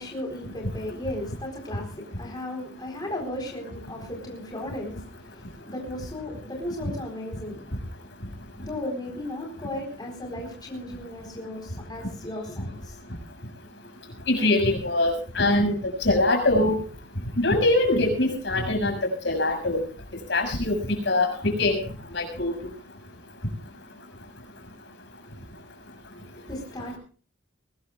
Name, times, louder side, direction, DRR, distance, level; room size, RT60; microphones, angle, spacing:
voice 1, 0.0-5.0 5.3-7.8 8.6-12.9 26.5-27.0, left 1 dB, 20° left, 4.2 m, -35 dB
voice 2, 14.3-15.7 16.0-16.8 17.4-19.0 19.2-19.8 20.3-20.8 21.1-21.8 22.1-22.5, left 2 dB, 55° left, 6.5 m, -22 dB
22.5 x 20.0 x 2.4 m
head